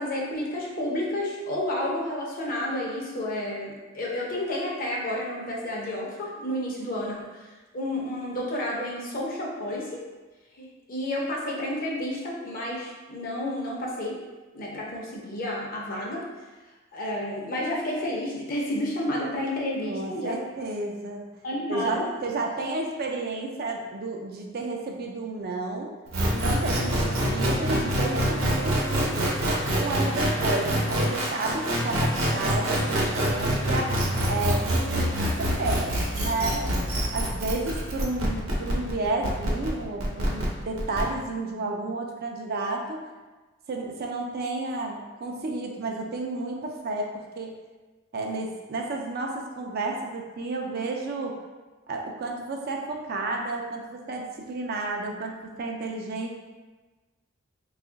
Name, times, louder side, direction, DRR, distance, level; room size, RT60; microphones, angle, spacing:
voice 1, 0.0-7.4 7.7-10.0 10.6-14.2 14.5-16.2 16.9-20.4 21.4-22.1, left 1 dB, 45° left, -3 dB, 0.7 m, -31 dB
voice 2, 19.9-21.2 21.7-25.9 26.3-29.2 29.7-33.9 34.3-36.7 37.1-43.0 43.7-47.5 48.1-51.4 51.9-56.3, right 2 dB, 50° right, 1 dB, 0.4 m, -31 dB
sound 1, 26.1-41.0, equal, 90° right, 0.8 m, -25 dB
2.8 x 2.4 x 3.8 m, 1.2 s
head